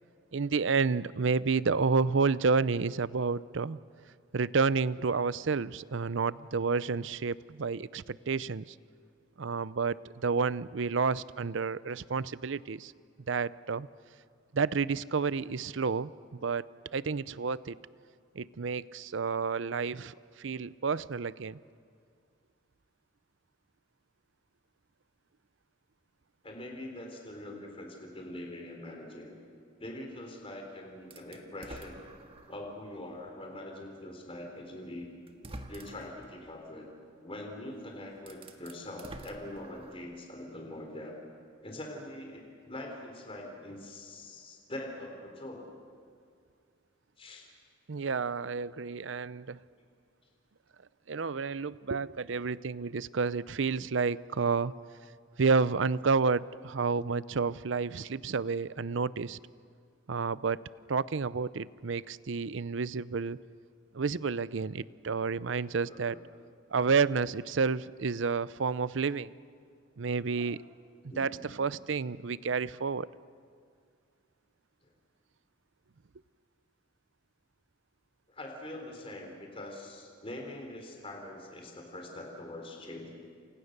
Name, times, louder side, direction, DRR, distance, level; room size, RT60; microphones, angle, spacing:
voice 1, 0.3-3.8 4.3-8.6 9.4-12.9 13.3-13.9 14.5-16.1 16.4-17.8 18.3-21.6 47.9-49.6 51.1-54.7 55.4-59.4 60.1-60.6 60.9-63.4 63.9-66.2 66.7-69.3 70.0-70.6 71.2-73.1, right 5 dB, 65° right, 18 dB, 0.6 m, -30 dB
voice 2, 26.4-29.4 29.8-32.0 32.5-35.1 35.7-36.9 37.2-41.2 41.6-45.6 47.2-47.5 65.9-66.3 70.4-70.5 71.1-71.5 78.3-83.1, left 1 dB, 30° left, 1 dB, 3.8 m, -43 dB
sound 1, 31.1-32.7 33.3-33.4 34.6-34.7 35.3-36.2 37.7-37.8 38.2-40.1, right 1 dB, 30° right, 1.8 m, -48 dB
28.5 x 27.5 x 6.7 m, 2.2 s
head